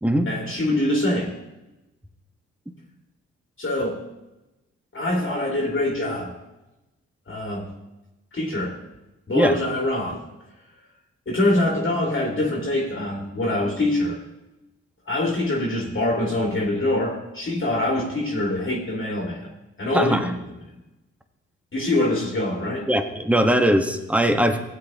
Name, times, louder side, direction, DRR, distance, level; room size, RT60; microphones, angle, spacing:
voice 1, 0.3-1.3 3.6-4.0 4.9-6.3 7.3-7.7 8.3-8.8 9.3-10.2 11.3-14.2 15.1-19.5 19.8-20.3 21.7-22.9, left 1 dB, 40° left, -2 dB, 2.4 m, -24 dB
voice 2, 19.9-20.3 22.9-24.6, equal, 5° right, 6 dB, 1.3 m, -20 dB
16.0 x 8.0 x 3.0 m, 0.99 s
hypercardioid pair, 45°, 32 cm